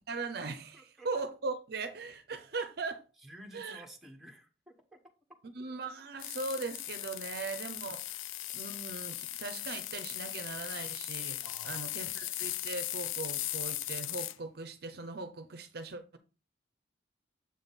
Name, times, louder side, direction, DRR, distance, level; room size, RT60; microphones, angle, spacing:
voice 1, 0.1-3.0 3.5-3.8 5.5-8.2 8.5-16.2, right 3 dB, 55° right, 0.6 m, -39 dB
voice 2, 0.7-1.1 3.2-5.0 11.4-12.1, right 1 dB, ahead, 1.0 m, -52 dB
sound 1, 6.2-14.4, left 14 dB, 90° left, 0.4 m, -38 dB
7.5 x 3.7 x 4.0 m
head